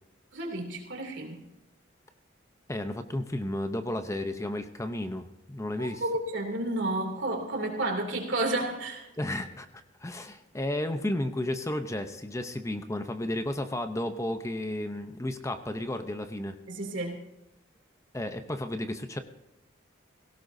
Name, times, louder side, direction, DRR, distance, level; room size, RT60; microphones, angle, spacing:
voice 1, 0.3-1.4 5.8-9.1 16.7-17.2, right 2 dB, 70° right, 2 dB, 2.8 m, -31 dB
voice 2, 2.7-6.0 9.2-9.7 10.0-16.6 18.1-19.2, left 1 dB, 15° left, 8 dB, 0.7 m, -33 dB
17.0 x 17.0 x 2.7 m, 0.94 s
head